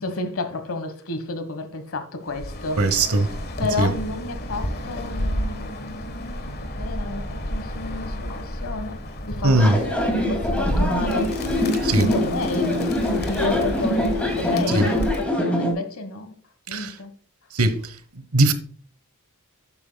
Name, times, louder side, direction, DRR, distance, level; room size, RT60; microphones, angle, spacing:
voice 1, 0.0-2.9 3.6-9.0 9.3-11.3 12.0-12.8 13.0-16.3 16.7-17.1, left 3 dB, 65° left, 1.4 m, -31 dB
Bird, 2.3-15.4, equal, 45° left, 1.4 m, -31 dB
voice 2, 2.8-3.3 3.8-3.9 9.4-9.8 11.8-12.1 14.7-14.9 16.7-17.0 17.5-17.9 18.3-18.5, right 2 dB, 75° right, 1.1 m, -19 dB
sound 1, 9.5-15.7, left 1 dB, 5° left, 2.4 m, -24 dB
12.0 x 8.5 x 2.3 m
head